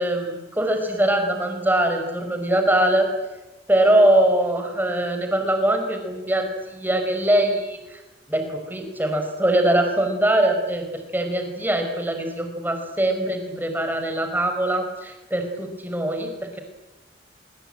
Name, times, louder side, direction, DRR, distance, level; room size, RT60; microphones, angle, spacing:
voice 1, 0.0-3.1 3.7-8.0 8.3-10.9 11.1-16.6, right 1 dB, 10° right, 5 dB, 4.8 m, -22 dB
25.5 x 24.0 x 9.0 m, 1.1 s
head